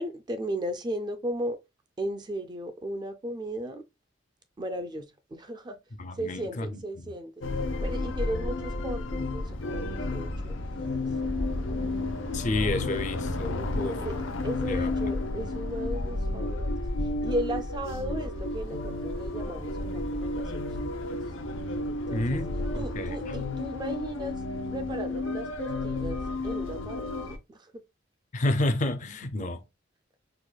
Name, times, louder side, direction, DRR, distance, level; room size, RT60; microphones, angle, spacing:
voice 1, 0.0-1.6 2.0-3.8 4.6-5.8 6.2-7.4 7.8-12.0 13.6-14.2 14.4-16.9 17.2-21.2 22.1-22.5 22.7-24.4 24.7-27.8, right 1 dB, 20° right, 0.3 m, -36 dB
voice 2, 6.0-6.8 12.3-14.0 14.7-14.9 22.1-23.2 28.3-29.6, left 2 dB, 40° left, 0.4 m, -30 dB
sound 1, 7.4-27.4, left 2 dB, 90° left, 0.6 m, -32 dB
4.7 x 2.2 x 2.2 m
head